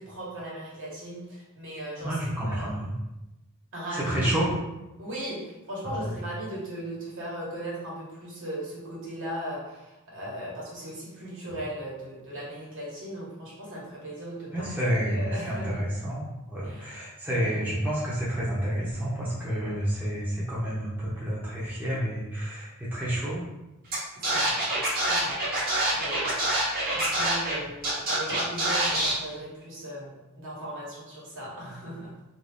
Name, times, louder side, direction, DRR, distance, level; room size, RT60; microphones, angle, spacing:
voice 1, 0.0-2.8 3.7-4.2 5.0-15.7 16.6-17.0 17.3-17.5 24.1-24.6 25.0-25.4 25.9-26.4 26.9-32.1, right 1 dB, 60° right, -5 dB, 1.3 m, -38 dB
voice 2, 2.0-3.0 3.9-4.5 5.9-6.1 14.5-23.5 26.9-27.1, equal, 10° right, -7 dB, 0.6 m, -29 dB
Scratching (performance technique), 23.9-24.0 24.2-27.5 27.8-29.1, right 1 dB, 45° right, 1.0 m, -26 dB
2.8 x 2.6 x 3.4 m, 0.98 s
head